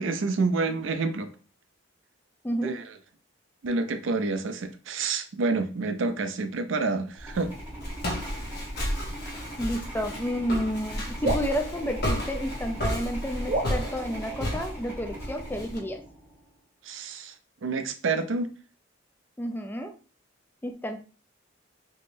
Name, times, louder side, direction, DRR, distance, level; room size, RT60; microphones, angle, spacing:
voice 1, 0.0-1.3 2.6-2.8 3.6-7.6 16.8-17.4 17.6-18.5, right 3 dB, 65° right, 0.5 m, -28 dB
sound 1, 7.1-16.5, right 1 dB, 10° right, 1.1 m, -41 dB
Walk footsteps, 7.2-15.8, left 1 dB, 50° left, 0.9 m, -33 dB
voice 2, 9.6-16.0 19.4-19.9 20.6-21.0, equal, 10° left, 0.3 m, -31 dB
sound 2, 11.2-12.9 13.5-15.2, right 2 dB, 35° right, 0.8 m, -34 dB
3.6 x 3.0 x 2.6 m
head